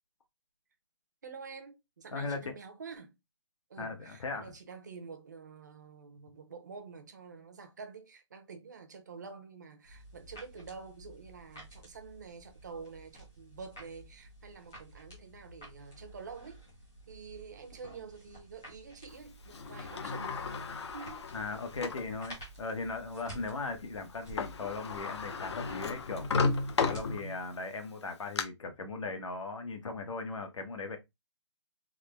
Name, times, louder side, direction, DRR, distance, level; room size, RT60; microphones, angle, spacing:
voice 1, 1.2-3.1 3.7-16.6 17.1-20.3 20.9-21.3, right 5 dB, 35° right, 0.7 m, -48 dB
voice 2, 2.1-2.5 3.8-4.5 21.3-26.3 26.8-31.0, left 3 dB, 85° left, 1.1 m, -38 dB
sound 1, 9.8-27.1, right 1 dB, 5° left, 0.3 m, -52 dB
Sliding door, 19.5-22.1 22.7-22.8 24.1-24.2 24.4-27.5 28.0-28.4, left 4 dB, 65° left, 0.7 m, -34 dB
3.7 x 2.1 x 3.3 m
hypercardioid pair, 175°, 16 cm